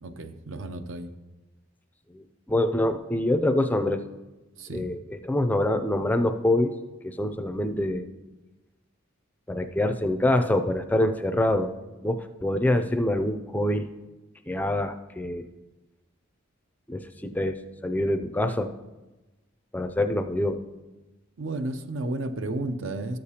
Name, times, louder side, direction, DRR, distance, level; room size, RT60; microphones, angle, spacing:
voice 1, 0.0-1.1 4.6-4.9 21.4-23.2, right 2 dB, 75° right, 9 dB, 0.6 m, -32 dB
voice 2, 2.1-4.0 4.7-6.7 7.0-8.1 9.5-11.7 12.0-13.9 14.5-15.5 16.9-17.6 17.8-18.7 19.7-20.6, left 1 dB, 10° left, 7 dB, 0.4 m, -25 dB
13.0 x 6.6 x 2.8 m, 1.1 s
head